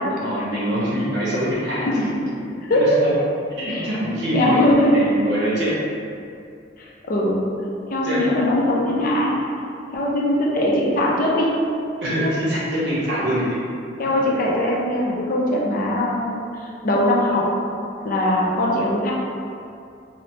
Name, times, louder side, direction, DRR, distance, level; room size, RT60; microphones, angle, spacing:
voice 1, 0.1-1.9 2.7-3.1 3.6-4.6 4.9-5.7 8.0-8.3 12.0-13.6, equal, 60° right, -7 dB, 0.8 m, -24 dB
voice 2, 1.8-2.3 2.7-3.0 3.7-3.9 4.3-5.0 6.8-7.4 7.9-9.3 9.9-11.6 12.2-12.3 13.3-13.4 14.0-17.5 18.0-19.1, left 1 dB, 50° left, -4 dB, 0.4 m, -21 dB
3.1 x 2.0 x 2.7 m, 2.5 s
head